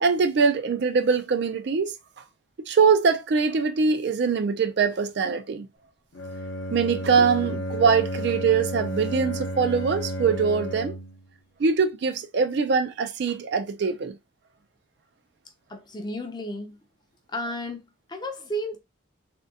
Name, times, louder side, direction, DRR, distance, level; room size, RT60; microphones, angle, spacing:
voice 1, 0.0-1.9 2.7-5.7 6.7-10.9 11.6-14.2, right 5 dB, 55° right, 0.4 m, -23 dB
Bowed string instrument, 6.1-11.2, equal, 70° left, 0.7 m, -32 dB
voice 2, 15.7-16.8 17.3-18.8, equal, 20° left, 0.5 m, -33 dB
3.5 x 2.2 x 2.8 m
head